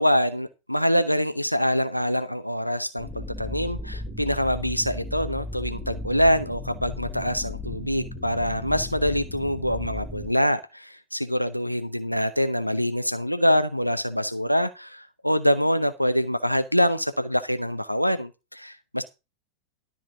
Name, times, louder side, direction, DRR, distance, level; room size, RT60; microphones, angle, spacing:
voice 1, 0.0-19.0, equal, 90° left, 10 dB, 0.8 m, -25 dB
sound 1, 3.0-10.3, left 2 dB, 10° left, 3.8 m, -35 dB
12.5 x 4.3 x 7.9 m, 0.27 s
figure-of-eight pair, 90°, 0 cm